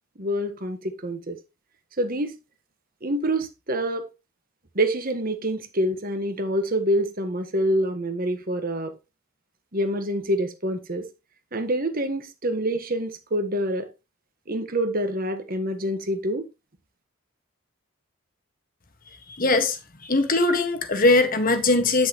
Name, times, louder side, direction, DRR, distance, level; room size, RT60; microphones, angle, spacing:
voice 1, 0.2-1.3 2.0-2.4 3.0-4.1 4.7-8.9 9.7-11.1 11.5-13.9 14.5-16.5, right 1 dB, 45° right, 1.4 m, -26 dB
voice 2, 19.4-19.8 20.0-22.1, left 2 dB, 40° left, 1.6 m, -20 dB
10.0 x 6.5 x 3.0 m
head